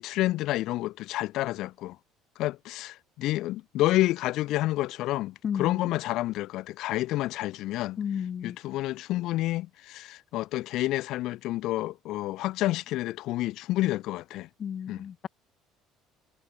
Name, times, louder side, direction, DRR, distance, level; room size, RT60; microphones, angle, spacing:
voice 1, 0.0-2.0 2.4-8.0 8.4-14.5 14.9-15.0, left 16 dB, 65° left, 5.5 m, -29 dB
voice 2, 5.4-5.9 8.0-8.6 14.6-15.3, left 8 dB, 40° left, 4.4 m, -32 dB
cardioid pair, 125°, 0 cm